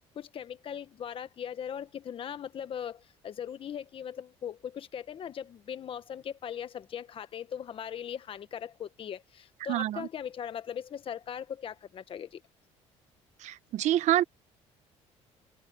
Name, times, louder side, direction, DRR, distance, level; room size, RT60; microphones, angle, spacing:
voice 1, 0.1-12.4, left 8 dB, 45° left, 1.4 m, -39 dB
voice 2, 9.7-10.1 13.4-14.2, right 13 dB, 70° right, 1.2 m, -27 dB
cardioid pair, 115°, 13 cm